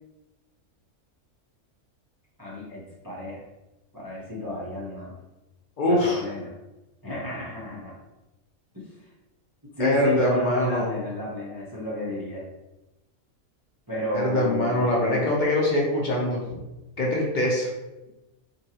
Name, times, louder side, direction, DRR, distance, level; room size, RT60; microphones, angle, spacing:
voice 1, 2.4-3.4 3.9-5.1 5.9-6.5 7.0-8.0 8.7-8.9 9.8-12.4 13.9-15.4, left 1 dB, 25° right, -6 dB, 0.4 m, -31 dB
voice 2, 5.8-6.2 9.8-10.9 14.1-16.6 17.0-17.7, left 1 dB, 55° left, -3 dB, 0.5 m, -23 dB
3.7 x 2.2 x 2.8 m, 1.0 s
omnidirectional pair, 1.4 m